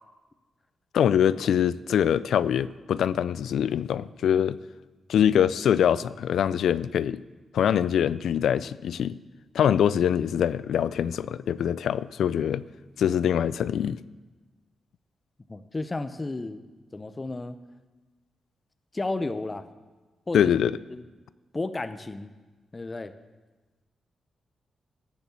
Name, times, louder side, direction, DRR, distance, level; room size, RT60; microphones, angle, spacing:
voice 1, 0.9-4.6 5.1-7.2 7.5-9.2 9.5-12.6 13.0-14.0 20.3-20.8, left 9 dB, 85° left, 0.3 m, -24 dB
voice 2, 15.5-16.6 16.9-17.6 18.9-19.7 20.3-20.5 20.9-21.0 21.5-22.3 22.7-23.1, left 2 dB, 25° left, 0.6 m, -32 dB
10.0 x 9.6 x 7.0 m
cardioid pair, 105°, 0 cm